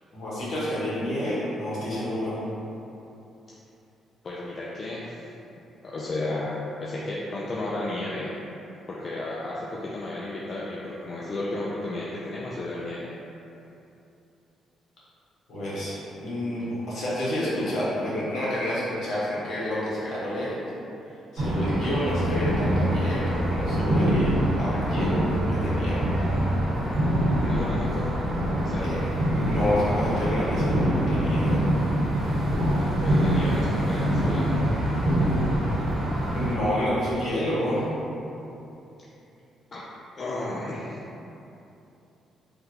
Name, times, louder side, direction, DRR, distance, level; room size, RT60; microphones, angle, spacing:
voice 1, 0.1-2.4 15.5-20.7 21.3-26.0 28.8-29.0 29.3-31.6 36.3-37.9, left 1 dB, 65° left, -9 dB, 1.2 m, -29 dB
voice 2, 4.2-5.2 5.8-8.3 8.9-13.1 27.4-28.2 28.6-29.0 33.0-34.7 39.7-39.8 40.2-41.0, left 2 dB, 40° left, -6 dB, 0.4 m, -33 dB
sound 1, 21.4-36.5, right 1 dB, 80° right, 1.2 m, -24 dB
3.5 x 2.3 x 2.8 m, 2.8 s
cardioid pair, 90°, 0 cm